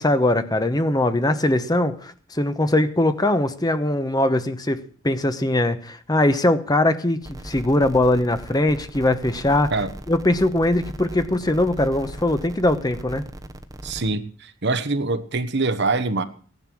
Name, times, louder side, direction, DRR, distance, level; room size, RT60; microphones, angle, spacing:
voice 1, 0.0-9.7 10.1-13.2, left 1 dB, 20° left, 10 dB, 1.0 m, -21 dB
sound 1, 7.2-14.1, equal, 20° right, 1.1 m, -38 dB
voice 2, 13.8-16.2, right 3 dB, 60° right, 11 dB, 1.2 m, -24 dB
17.0 x 11.0 x 6.1 m, 0.43 s
head